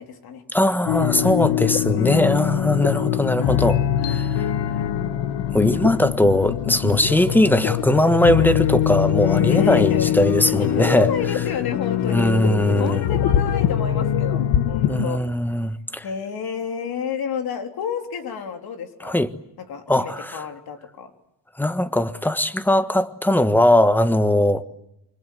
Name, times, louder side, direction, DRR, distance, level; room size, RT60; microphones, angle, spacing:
voice 1, 0.0-0.4 0.9-1.3 9.4-10.1 10.4-12.3 12.8-15.2 16.0-19.2 19.6-21.1, left 7 dB, 60° left, 3.8 m, -30 dB
voice 2, 0.5-4.5 5.5-11.1 12.1-13.0 14.9-16.0 19.0-19.3 19.9-20.4 21.6-24.6, left 1 dB, 5° left, 1.4 m, -20 dB
sound 1, 0.9-15.1, left 11 dB, 85° left, 1.6 m, -22 dB
28.5 x 25.5 x 7.9 m
cardioid pair, 125°, 42 cm